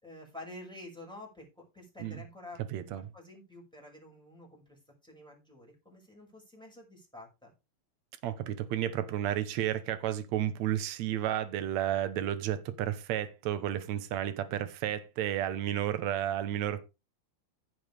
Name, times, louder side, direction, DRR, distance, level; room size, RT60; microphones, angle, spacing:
voice 1, 0.0-2.6 2.9-7.5, left 1 dB, ahead, 5.3 m, -49 dB
voice 2, 2.7-3.1 8.2-16.8, right 11 dB, 75° right, 1.6 m, -32 dB
15.5 x 7.2 x 3.4 m
omnidirectional pair, 4.6 m